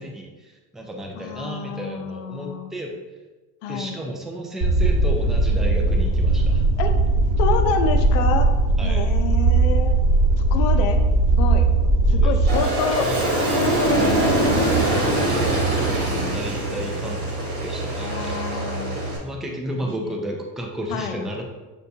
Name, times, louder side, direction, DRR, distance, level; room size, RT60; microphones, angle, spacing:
voice 1, 0.0-2.9 3.7-6.7 8.8-9.1 12.1-12.7 13.0-13.4 15.7-18.4 19.2-21.4, equal, ahead, 1 dB, 0.4 m, -33 dB
voice 2, 1.1-2.7 3.6-4.0 6.8-6.9 7.4-8.5 8.8-10.0 10.5-11.0 11.3-11.6 12.1-13.1 13.5-15.4 16.0-17.0 18.0-19.0 20.0-20.1 20.9-21.2, left 7 dB, 75° left, 6 dB, 0.6 m, -28 dB
sound 1, 4.6-12.6, right 2 dB, 30° right, 1.1 m, -19 dB
Aircraft, 12.5-19.2, right 1 dB, 55° right, 1.4 m, -23 dB
6.5 x 2.2 x 2.7 m, 1.2 s
supercardioid pair, 110°, 40 cm